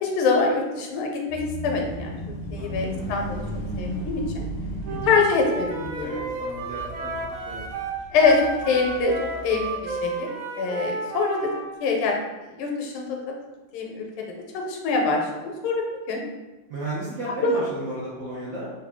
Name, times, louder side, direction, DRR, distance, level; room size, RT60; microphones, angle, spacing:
voice 1, 0.0-2.1 2.5-3.4 3.8-4.4 5.0-6.2 8.1-10.3 10.6-11.5 11.8-12.2 12.6-13.3 13.7-14.2 14.5-16.2 17.4-17.6, left 4 dB, 90° left, 1 dB, 1.5 m, -24 dB
sound 1, 1.3-10.1, equal, 55° left, 0.6 m, -36 dB
voice 2, 2.6-3.2 4.9-5.2 6.0-7.1 7.4-7.6 16.7-18.7, right 1 dB, 70° right, -8 dB, 0.8 m, -34 dB
Wind instrument woodwind instrument, 4.8-11.6, right 3 dB, 90° right, 1.5 m, -32 dB
3.7 x 2.1 x 3.4 m, 1.1 s
omnidirectional pair, 2.3 m